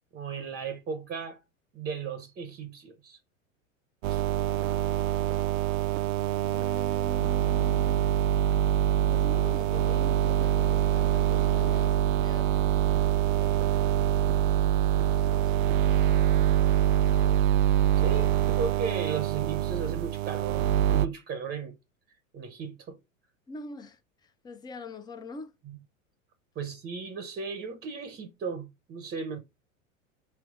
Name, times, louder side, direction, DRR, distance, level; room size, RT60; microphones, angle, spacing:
voice 1, 0.1-1.4 1.7-3.2 4.1-4.2 18.0-21.7 22.3-23.0 25.7-25.8 26.6-29.4, right 5 dB, 25° right, 0.7 m, -36 dB
sound 1, 4.0-21.1, right 12 dB, 70° right, 0.5 m, -25 dB
voice 2, 6.4-8.1 9.0-12.7 13.3-13.8 14.9-15.5 17.1-17.5 23.5-25.5, left 3 dB, 10° left, 0.4 m, -44 dB
3.2 x 3.0 x 4.7 m
hypercardioid pair, 100°, 41 cm